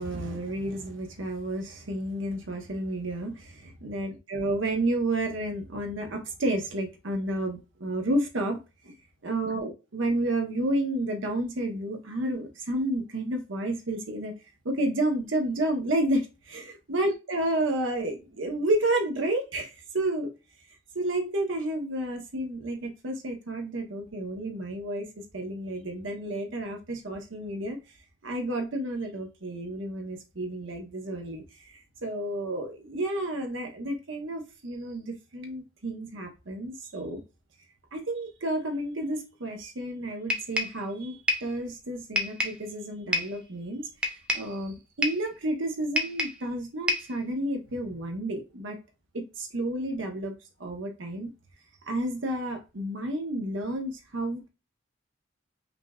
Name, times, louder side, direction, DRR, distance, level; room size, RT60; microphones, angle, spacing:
voice 1, 0.0-8.6 8.8-8.9 9.2-14.3 14.6-19.7 19.9-20.3 20.9-25.1 25.3-27.8 28.2-31.4 32.0-37.2 37.9-43.9 44.3-48.8 49.1-50.3 50.6-51.3 51.9-54.5, right 1 dB, 75° right, 0.9 m, -31 dB
sound 1, 40.3-40.8 41.3-41.5 42.2-42.6 43.1-43.4 44.0-44.5 45.0-45.3 46.0-46.4 46.9-47.2, left 1 dB, 5° right, 0.4 m, -28 dB
5.1 x 2.4 x 2.3 m
head